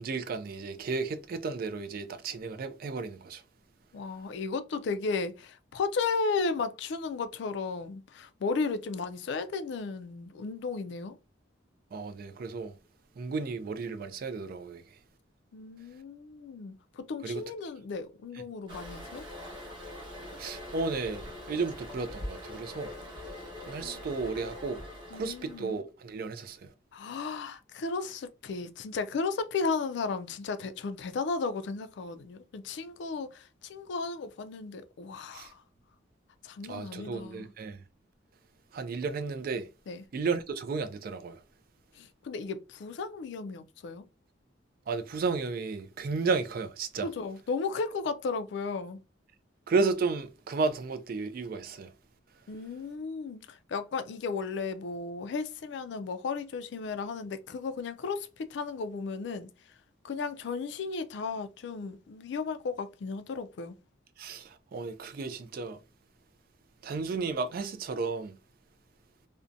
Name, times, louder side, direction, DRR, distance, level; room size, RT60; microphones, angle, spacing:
voice 1, 0.0-3.4 11.9-12.7 13.2-14.8 17.2-17.4 20.4-22.9 23.7-24.8 25.1-26.7 35.3-35.5 36.7-37.8 38.7-39.7 40.1-41.4 44.9-47.1 49.7-51.9 64.2-65.8 66.8-68.4, right 4 dB, 50° right, 0.3 m, -33 dB
voice 2, 3.9-11.2 15.5-19.3 23.8-24.1 25.1-25.8 26.9-35.6 36.4-37.5 39.9-40.1 41.9-44.0 47.0-49.0 52.5-59.7 60.0-63.8, left 4 dB, 60° left, 0.3 m, -34 dB
Toilet flush, 18.7-25.8, left 1 dB, 25° right, 1.0 m, -43 dB
2.6 x 2.1 x 2.5 m
head